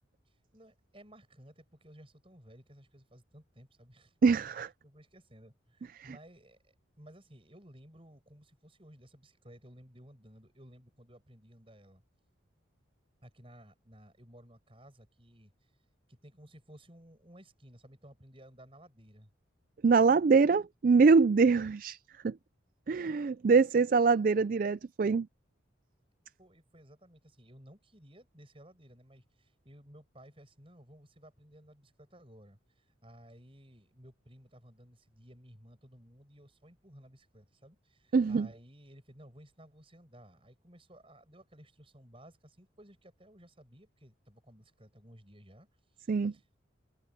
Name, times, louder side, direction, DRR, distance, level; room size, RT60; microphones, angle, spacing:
voice 1, 0.5-4.1 4.8-12.0 13.2-15.5 16.1-19.3 26.4-46.6, equal, 30° right, 7.3 m, -56 dB
voice 2, 4.2-4.7 6.0-6.2 19.8-22.0 22.2-22.4 22.9-25.3 38.1-38.5 46.1-46.3, right 4 dB, 45° right, 0.3 m, -24 dB
head